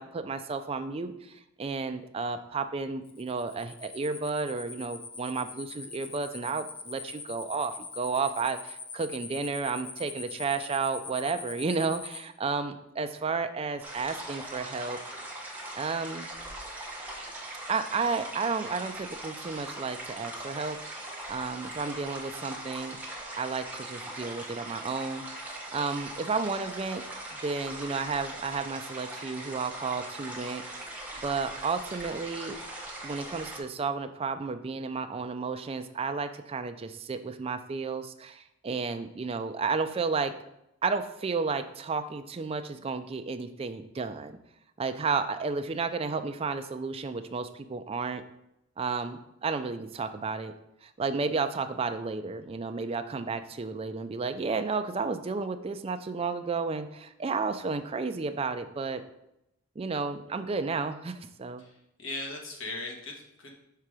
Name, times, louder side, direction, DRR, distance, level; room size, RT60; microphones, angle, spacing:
voice 1, 0.0-15.0 15.8-16.3 17.7-20.8 21.3-23.0 23.4-27.0 27.3-30.6 31.2-32.6 33.0-40.3 40.8-44.4 44.8-48.2 48.8-50.5 50.8-59.0 59.8-61.6, right 4 dB, 30° right, 8 dB, 0.4 m, -32 dB
sound 1, 3.0-12.2, left 5 dB, 30° left, 0.6 m, -42 dB
sound 2, 13.8-33.6, right 1 dB, 10° right, 1.0 m, -41 dB
voice 2, 62.0-63.5, left 2 dB, 80° left, 1 dB, 1.3 m, -38 dB
5.7 x 3.8 x 4.8 m, 0.82 s
head